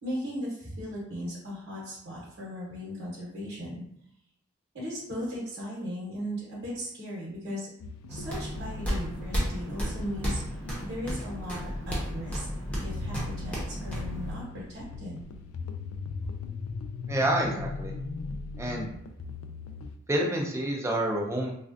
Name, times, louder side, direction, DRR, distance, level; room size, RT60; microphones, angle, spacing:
voice 1, 0.0-3.8 4.7-7.7 8.1-10.4 10.8-12.5 12.8-15.3, equal, 55° right, -6 dB, 1.1 m, -37 dB
sound 1, 7.8-20.0, left 4 dB, 90° left, 0.3 m, -40 dB
sound 2, 8.1-14.3, equal, 5° left, 0.8 m, -33 dB
voice 2, 17.1-17.9 18.6-18.9 20.1-21.5, right 1 dB, 15° right, -1 dB, 0.4 m, -28 dB
3.2 x 2.4 x 2.5 m, 0.73 s
head